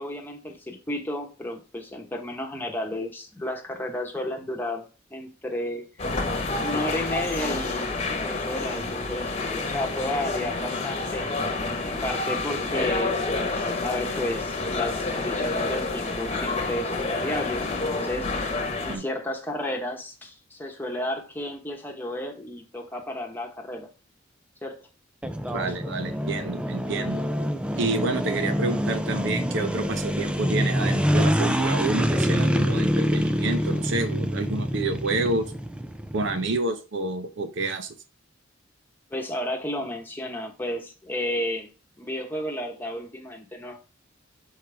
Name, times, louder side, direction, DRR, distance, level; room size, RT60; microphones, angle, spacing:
voice 1, 0.0-5.8 6.6-11.3 11.8-18.3 18.8-23.9 24.6-24.8 39.1-41.7 42.0-43.8, left 1 dB, 10° left, 1 dB, 1.1 m, -32 dB
sound 1, 6.0-19.0, left 3 dB, 30° left, 1.1 m, -28 dB
sound 2, 25.2-36.6, equal, 5° right, 0.4 m, -26 dB
voice 2, 25.5-27.2 27.8-35.5 36.1-37.9, right 2 dB, 65° right, 8 dB, 0.7 m, -29 dB
6.5 x 4.6 x 3.4 m, 0.32 s
head